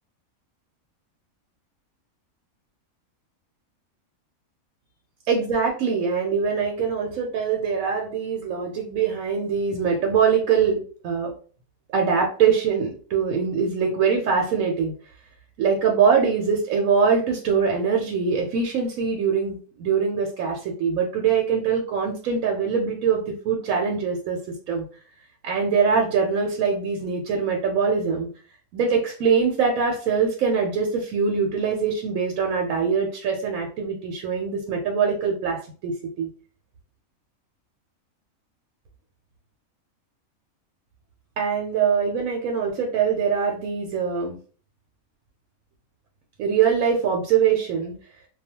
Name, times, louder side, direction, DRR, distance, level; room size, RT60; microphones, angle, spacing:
voice 1, 5.3-11.3 11.9-14.9 15.6-24.4 24.7-24.8 25.4-28.3 28.7-35.9 36.2-36.3 41.4-44.4 46.4-47.9, right 6 dB, 75° right, 0 dB, 1.0 m, -23 dB
2.3 x 2.2 x 2.8 m, 0.41 s
omnidirectional pair, 1.5 m